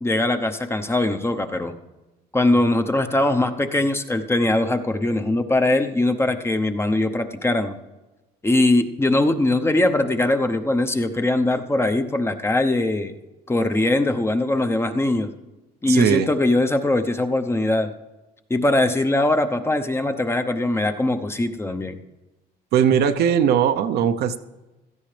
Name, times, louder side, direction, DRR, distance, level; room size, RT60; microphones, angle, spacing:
voice 1, 0.0-1.7 2.3-7.8 8.4-13.1 13.5-15.3 15.8-17.9 18.5-22.0, left 2 dB, 15° left, 7 dB, 0.8 m, -21 dB
voice 2, 15.9-16.3 22.7-24.4, right 8 dB, 70° right, 8 dB, 0.7 m, -19 dB
16.0 x 13.0 x 3.4 m, 1.1 s
cardioid pair, 110°, 17 cm